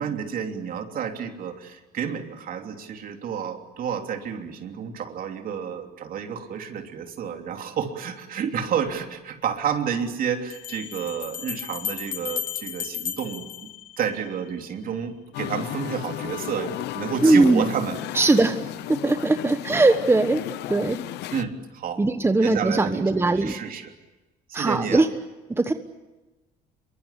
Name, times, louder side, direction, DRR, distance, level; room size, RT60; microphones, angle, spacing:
voice 1, 0.0-13.5 14.0-18.0 18.3-18.4 21.3-22.0 22.4-23.9 24.5-25.1, right 7 dB, 60° right, 5 dB, 3.2 m, -30 dB
sound 1, 8.9-9.0 10.5-14.5, left 9 dB, 55° left, 1.7 m, -34 dB
Musical instrument, 15.3-21.4, left 14 dB, 85° left, 1.0 m, -34 dB
voice 2, 17.2-17.6 18.1-18.6 19.0-20.4 20.7-21.0 22.0-23.5 24.5-25.1 25.6-25.7, right 2 dB, 15° right, 9 dB, 1.2 m, -20 dB
26.5 x 23.0 x 8.4 m, 1.1 s
cardioid pair, 110°, 17 cm